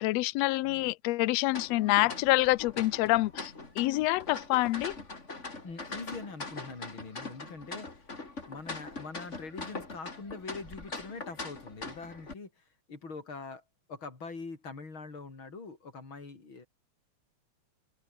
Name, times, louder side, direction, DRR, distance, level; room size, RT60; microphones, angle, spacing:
voice 1, 0.0-5.0, left 19 dB, 75° left, 1.7 m, -27 dB
sound 1, 1.5-12.3, left 3 dB, 25° left, 3.5 m, -42 dB
voice 2, 5.6-8.1 8.5-13.6 13.9-16.7, left 4 dB, 40° left, 5.6 m, -43 dB
open air
omnidirectional pair, 3.4 m